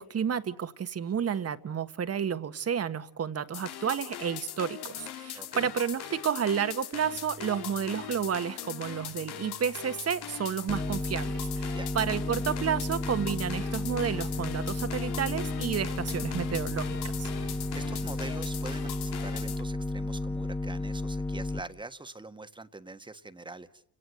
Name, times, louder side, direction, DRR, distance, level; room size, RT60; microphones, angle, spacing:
voice 1, 0.0-17.3, right 8 dB, 40° right, 12 dB, 1.4 m, -31 dB
sound 1, 3.5-19.6, left 12 dB, 85° left, 1.9 m, -41 dB
voice 2, 5.3-5.7 11.7-11.9 17.4-23.8, right 2 dB, 10° right, 10 dB, 1.4 m, -44 dB
sound 2, 6.9-8.6 9.0-11.5 12.2-18.6, right 6 dB, 70° right, 2.6 m, -52 dB
sound 3, 10.7-21.6, left 2 dB, 5° left, 1.0 m, -33 dB
30.0 x 18.0 x 8.0 m, 0.75 s
cardioid pair, 95°, 39 cm